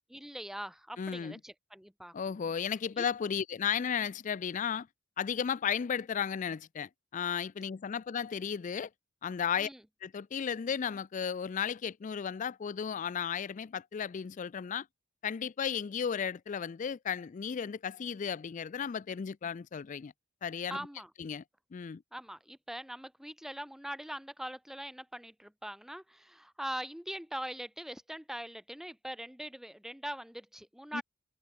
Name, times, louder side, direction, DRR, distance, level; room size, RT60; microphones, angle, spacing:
voice 1, 0.1-2.4 3.0-3.1 9.6-9.8 20.7-21.1 22.1-31.0, equal, ahead, 0.6 m, -42 dB
voice 2, 1.0-1.4 2.1-4.9 5.2-8.9 9.2-9.7 10.0-14.9 15.2-20.1 20.4-20.8 21.2-21.4 21.7-22.0 30.9-31.0, left 7 dB, 35° left, 0.3 m, -34 dB
head